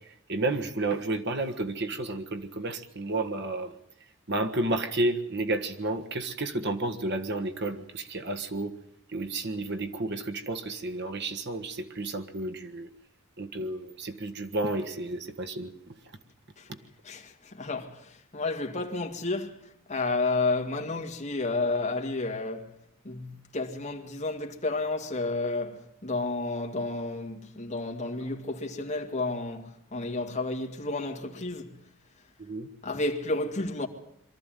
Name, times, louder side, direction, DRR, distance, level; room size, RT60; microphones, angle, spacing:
voice 1, 0.3-3.7 4.3-8.7 9.1-12.9 13.4-15.7 32.5-32.7, right 2 dB, 55° right, 1.6 m, -31 dB
voice 2, 17.0-22.7 23.0-31.7 32.8-33.9, left 3 dB, 35° left, 2.2 m, -31 dB
23.5 x 13.5 x 9.2 m
head